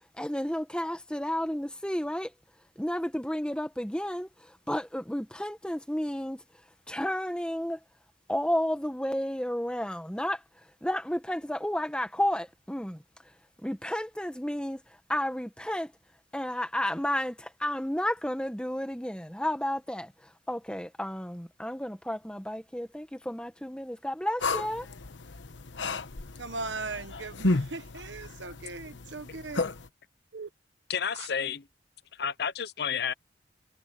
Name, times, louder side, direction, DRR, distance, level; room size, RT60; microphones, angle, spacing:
voice 1, 0.2-2.3 2.8-6.4 6.9-7.8 8.3-10.4 10.8-13.0 13.6-14.8 15.1-15.9 16.3-20.1 20.5-24.9, left 1 dB, 5° left, 1.5 m, -32 dB
sound 1, 24.4-29.9, left 2 dB, 80° left, 1.0 m, -33 dB
voice 2, 26.4-29.6 30.3-30.5 31.1-31.3, right 3 dB, 75° right, 1.4 m, -38 dB
voice 3, 30.9-31.7 32.1-33.1, left 7 dB, 55° left, 0.6 m, -31 dB
head